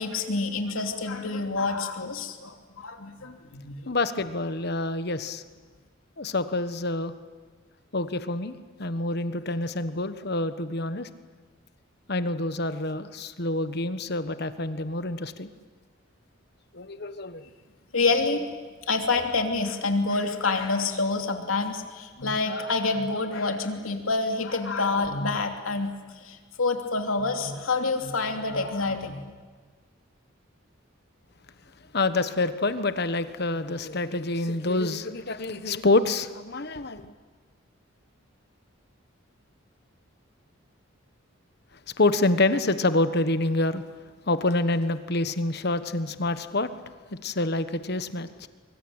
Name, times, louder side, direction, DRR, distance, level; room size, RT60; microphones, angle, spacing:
voice 1, 0.0-3.9 17.9-18.5 18.9-29.3, left 3 dB, 85° left, 5 dB, 3.0 m, -27 dB
voice 2, 3.9-5.4 6.2-7.1 7.9-11.1 12.1-15.5 16.7-17.4 31.9-37.1 42.0-43.8 44.3-46.7 47.1-48.5, left 2 dB, 50° left, 11 dB, 1.3 m, -27 dB
24.0 x 24.0 x 8.9 m, 1.5 s
head